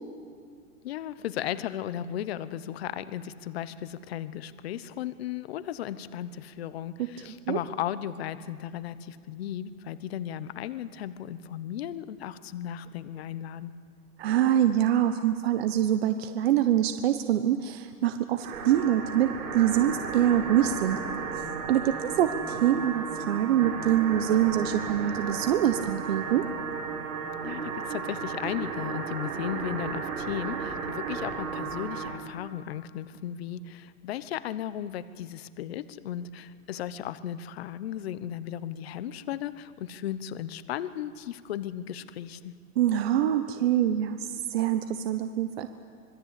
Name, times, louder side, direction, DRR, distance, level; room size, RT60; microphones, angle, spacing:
voice 1, 0.8-13.7 27.4-42.5, left 11 dB, 45° left, 14 dB, 1.0 m, -35 dB
voice 2, 14.2-21.0 21.7-26.4 42.8-45.7, right 11 dB, 45° right, 8 dB, 1.1 m, -25 dB
sound 1, 18.4-32.2, right 5 dB, 75° right, 5.9 m, -34 dB
26.0 x 21.5 x 8.4 m, 2.1 s
hypercardioid pair, 160°, 44 cm